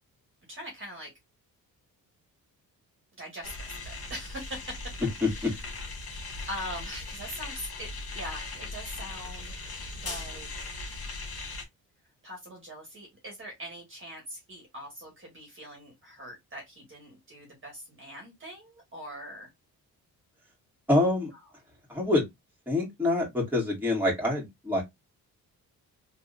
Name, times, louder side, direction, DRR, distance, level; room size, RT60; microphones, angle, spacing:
voice 1, 0.5-1.1 3.2-4.9 5.2-5.7 6.5-11.0 12.2-19.5, equal, 35° right, 1.8 m, -42 dB
sound 1, 3.4-11.6, left 3 dB, 40° left, 1.9 m, -39 dB
voice 2, 20.9-21.3 21.9-22.3 22.7-24.8, left 2 dB, 5° right, 2.1 m, -26 dB
3.7 x 2.8 x 2.5 m
cardioid pair, 85°, 36 cm